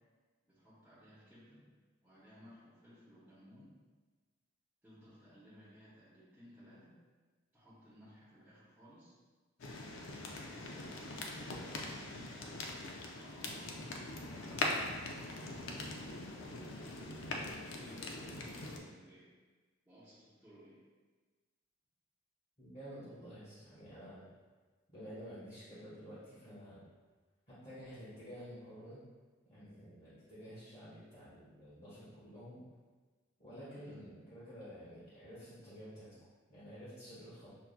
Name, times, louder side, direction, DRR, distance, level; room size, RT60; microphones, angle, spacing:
voice 1, 0.4-1.7 2.0-3.7 4.8-7.0 7.5-9.2 10.1-12.4 13.2-15.9 16.8-17.2 17.5-19.3 19.9-20.8 33.4-34.0, equal, 10° right, -11 dB, 0.7 m, -59 dB
sound 1, 9.6-18.8, left 2 dB, 70° left, 0.5 m, -42 dB
voice 2, 22.6-24.2 24.9-26.8 27.5-29.0 29.4-32.6 33.4-36.1 36.5-37.5, equal, 40° left, -13 dB, 1.3 m, -50 dB
5.9 x 2.3 x 2.2 m, 1.4 s
head